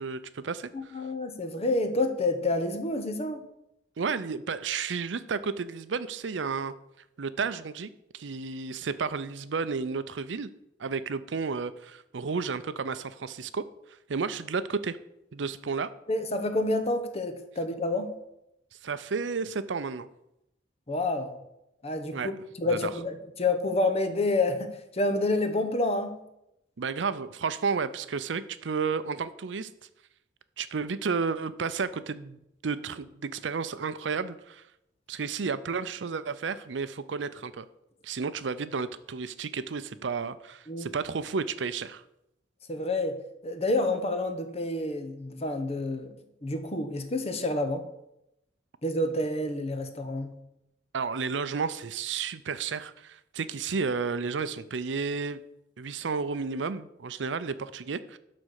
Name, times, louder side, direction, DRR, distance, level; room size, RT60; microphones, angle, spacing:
voice 1, 0.0-0.7 4.0-6.7 7.2-10.5 10.8-13.6 14.1-15.0 15.3-15.9 18.8-20.1 22.1-22.3 22.7-22.9 26.8-29.7 30.6-34.6 35.1-37.7 38.0-42.0 50.9-55.4 55.8-58.2, right 5 dB, 85° right, 14 dB, 0.6 m, -32 dB
voice 2, 0.7-3.4 16.1-18.2 20.9-21.4 21.8-22.3 22.6-26.2 40.7-40.9 42.7-46.1 46.4-47.8 48.8-50.4, left 2 dB, 35° left, 8 dB, 1.0 m, -28 dB
11.5 x 4.3 x 6.4 m, 0.84 s
head